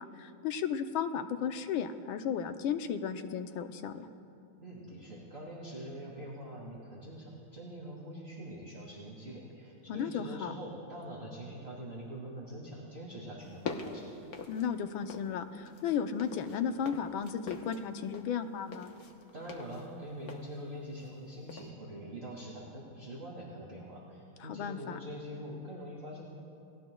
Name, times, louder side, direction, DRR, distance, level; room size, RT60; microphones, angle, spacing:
voice 1, 0.0-4.1 9.9-10.5 14.5-18.9 24.4-25.0, left 7 dB, 75° left, 8 dB, 1.5 m, -34 dB
voice 2, 4.6-14.1 19.3-26.2, equal, 30° right, -5 dB, 2.3 m, -44 dB
sound 1, 13.4-15.4 15.6-21.2 21.5-21.7, left 5 dB, 50° left, 1.4 m, -44 dB
30.0 x 18.0 x 2.3 m, 2.5 s
omnidirectional pair, 2.3 m